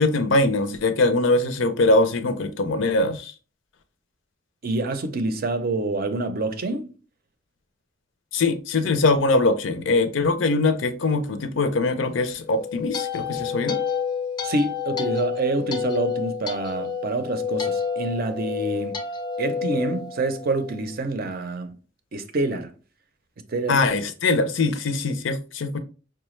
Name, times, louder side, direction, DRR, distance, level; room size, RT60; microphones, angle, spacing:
voice 1, 0.0-3.3 8.3-13.8 23.7-25.8, left 2 dB, 75° left, 0.5 m, -22 dB
voice 2, 4.6-6.9 14.4-18.9 19.4-21.8 22.1-22.7 23.5-23.8, right 2 dB, 50° right, 0.5 m, -27 dB
sound 1, 12.4-20.8, left 6 dB, 25° left, 0.4 m, -29 dB
4.7 x 2.2 x 3.1 m
head